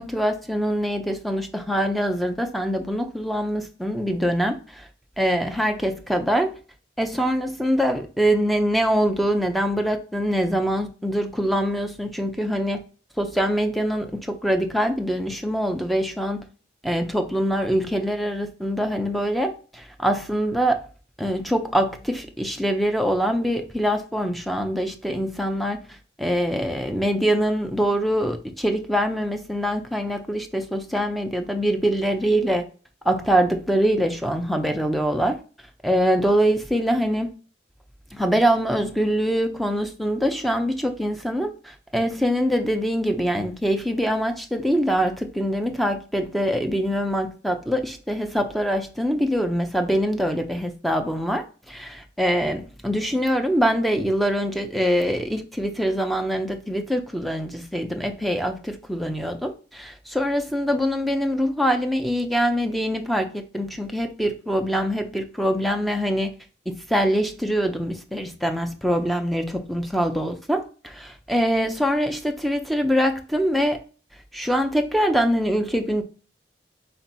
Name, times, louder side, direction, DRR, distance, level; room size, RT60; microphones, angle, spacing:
voice 1, 0.0-4.6 5.2-6.5 7.0-12.8 13.2-16.4 16.8-20.8 21.2-25.8 26.2-32.6 33.1-35.4 35.8-37.3 38.1-66.3 66.7-73.8 74.3-76.0, equal, ahead, 0.5 m, -24 dB
4.3 x 2.9 x 4.0 m
head